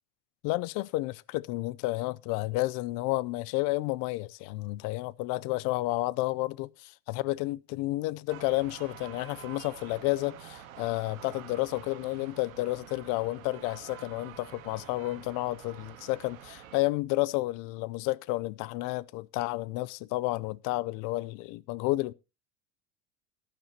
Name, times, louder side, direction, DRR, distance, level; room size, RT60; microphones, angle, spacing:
voice 1, 0.4-22.1, left 20 dB, 50° left, 0.5 m, -31 dB
sound 1, 8.3-16.8, right 11 dB, 85° right, 1.7 m, -48 dB
15.0 x 10.5 x 2.8 m
supercardioid pair, 110°, 41 cm